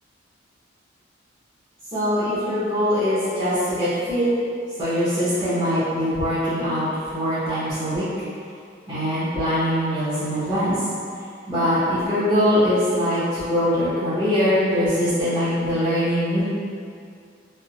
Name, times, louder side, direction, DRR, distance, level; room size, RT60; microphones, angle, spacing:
voice 1, 1.9-4.3 4.8-8.0 8.9-10.8 11.5-16.4, equal, 20° right, -18 dB, 1.0 m, -22 dB
3.3 x 2.6 x 2.5 m, 2.4 s
head